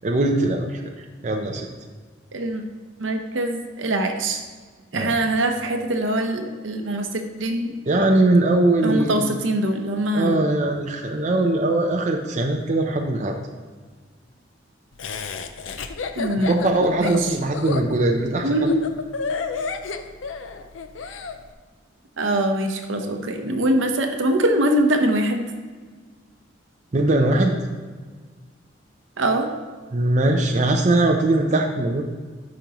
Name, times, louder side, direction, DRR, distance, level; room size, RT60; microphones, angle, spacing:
voice 1, 0.0-0.8 1.2-1.7 4.9-5.1 7.9-9.3 10.1-13.4 16.5-18.7 26.9-27.6 29.9-32.0, right 2 dB, 40° right, 2 dB, 0.6 m, -21 dB
voice 2, 2.3-2.6 3.0-4.4 4.9-7.8 8.8-10.4 16.2-16.6 17.0-17.3 18.4-18.8 22.2-25.5 29.2-29.5, right 1 dB, 75° right, 5 dB, 0.9 m, -23 dB
Laughter, 15.0-21.4, left 5 dB, 80° left, 0.5 m, -31 dB
12.5 x 5.2 x 3.0 m, 1.5 s
head